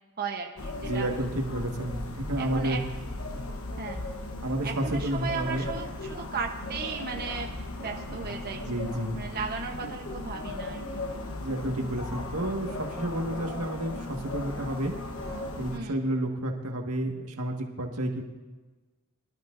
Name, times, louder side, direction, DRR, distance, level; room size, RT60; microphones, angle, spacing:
voice 1, 0.2-1.1 1.9-2.8 3.8-4.1 4.6-7.5 7.8-8.6 9.2-11.0 15.7-16.0, right 5 dB, 45° right, 1 dB, 0.9 m, -36 dB
sound 1, 0.6-15.8, left 2 dB, 70° left, 1.1 m, -37 dB
voice 2, 0.8-2.8 3.3-3.5 4.4-5.7 8.6-9.2 11.4-14.9 15.6-18.2, right 1 dB, 85° right, 2 dB, 1.7 m, -31 dB
23.0 x 12.5 x 2.6 m, 1.3 s
head